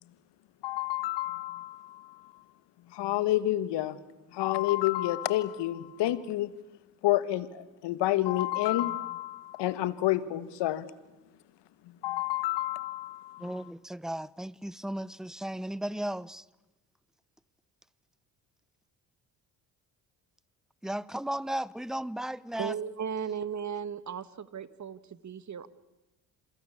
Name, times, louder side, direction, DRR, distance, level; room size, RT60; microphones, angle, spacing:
voice 1, 0.6-2.4 2.9-4.0 4.3-6.5 7.0-10.9 12.0-13.6, left 15 dB, 70° left, 1.6 m, -29 dB
voice 2, 13.4-16.4 20.8-22.7, right 1 dB, ahead, 0.8 m, -35 dB
voice 3, 22.6-25.7, right 7 dB, 40° right, 1.7 m, -36 dB
27.5 x 21.5 x 8.6 m
hypercardioid pair, 55°, 44 cm